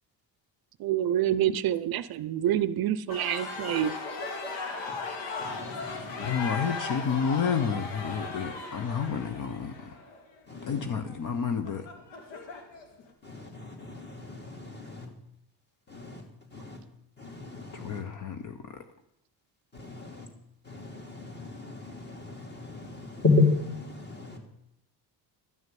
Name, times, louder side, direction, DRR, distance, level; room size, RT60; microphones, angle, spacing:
voice 1, 0.8-4.0, right 11 dB, 55° right, 15 dB, 0.6 m, -27 dB
sound 1, 3.1-13.0, left 3 dB, 80° left, 2.4 m, -37 dB
voice 2, 5.4-6.3 10.5-10.9 13.2-15.1 15.9-16.2 16.5-16.8 17.2-18.0 19.7-20.3 20.6-24.4, left 3 dB, 25° left, 3 dB, 2.8 m, -32 dB
voice 3, 6.2-9.7 10.7-11.8 17.8-18.5, left 6 dB, 45° left, 9 dB, 0.9 m, -30 dB
12.0 x 6.5 x 9.2 m, 0.82 s
cardioid pair, 135°, 44 cm